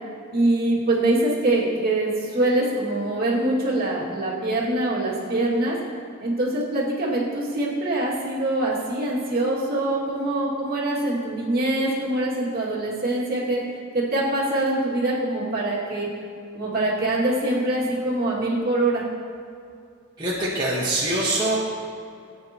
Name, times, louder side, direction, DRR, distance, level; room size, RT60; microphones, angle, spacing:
voice 1, 0.3-5.8 6.2-13.6 13.9-16.1 16.5-19.1, right 1 dB, 45° right, -5 dB, 2.2 m, -24 dB
voice 2, 20.2-21.6, right 1 dB, 20° right, -7 dB, 1.3 m, -24 dB
16.5 x 8.9 x 2.9 m, 2.5 s
head